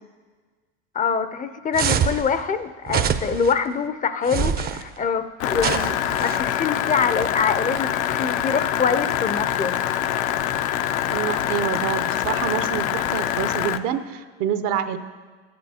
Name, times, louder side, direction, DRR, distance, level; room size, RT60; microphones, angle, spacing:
voice 1, 0.9-9.9, left 6 dB, 25° left, 11 dB, 0.4 m, -25 dB
sound 1, 1.7-2.2 2.9-3.5 4.3-4.8 5.6-6.4, right 7 dB, 30° right, 0.5 m, -24 dB
sound 2, 5.4-13.8, left 11 dB, 80° left, 0.6 m, -25 dB
voice 2, 11.1-15.0, right 9 dB, 70° right, 10 dB, 0.7 m, -27 dB
14.0 x 9.5 x 2.8 m, 1.4 s
supercardioid pair, 105°, 32 cm